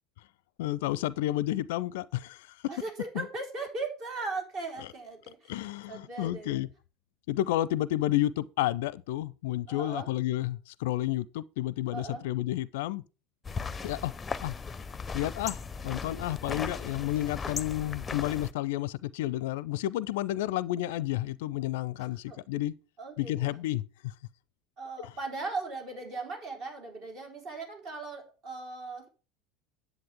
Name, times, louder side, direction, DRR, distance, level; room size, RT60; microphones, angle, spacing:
voice 1, 0.6-2.6 3.2-3.3 5.5-6.7 7.3-13.0 13.8-14.1 14.4-14.5 15.1-22.7 23.2-24.1 25.0-25.1, left 15 dB, 65° left, 0.5 m, -31 dB
voice 2, 2.7-6.6 9.7-10.1 11.9-12.3 22.0-22.5 23.0-23.6 24.8-29.1, right 3 dB, 55° right, 3.8 m, -38 dB
sound 1, 13.4-18.5, left 5 dB, 20° left, 0.6 m, -37 dB
10.5 x 7.8 x 3.5 m
figure-of-eight pair, 70°, 0 cm